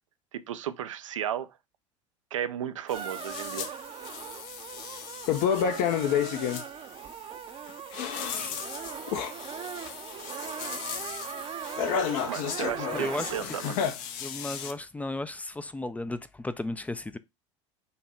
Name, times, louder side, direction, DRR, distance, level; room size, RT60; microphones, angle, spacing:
voice 1, 0.3-1.5 2.3-3.7 12.3-13.8, right 10 dB, 85° right, 0.5 m, -34 dB
sound 1, 2.9-3.7 4.0-6.6 7.7-14.7, left 8 dB, 60° left, 0.8 m, -31 dB
sound 2, 2.9-13.4, right 9 dB, 35° right, 0.6 m, -39 dB
voice 2, 12.9-13.3 14.2-17.2, left 2 dB, 10° left, 0.4 m, -35 dB
5.6 x 2.2 x 4.3 m
hypercardioid pair, 85°, 16 cm